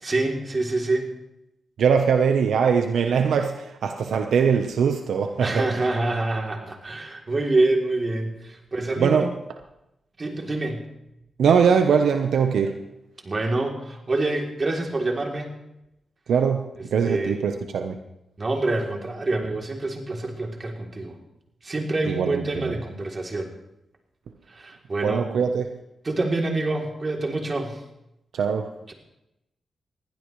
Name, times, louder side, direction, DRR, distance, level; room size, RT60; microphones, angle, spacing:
voice 1, 0.0-1.1 5.4-9.3 10.2-10.9 13.2-15.5 17.0-17.4 18.4-21.2 21.6-23.5 24.5-25.2 26.0-27.8 28.9-29.0, right 2 dB, 40° right, 1 dB, 3.3 m, -26 dB
voice 2, 1.8-5.7 9.0-9.3 11.4-12.8 16.3-18.0 22.1-22.7 25.0-25.7 28.3-28.7, right 6 dB, 90° right, 6 dB, 1.0 m, -21 dB
21.0 x 15.5 x 3.2 m, 0.87 s
cardioid pair, 70°, 0 cm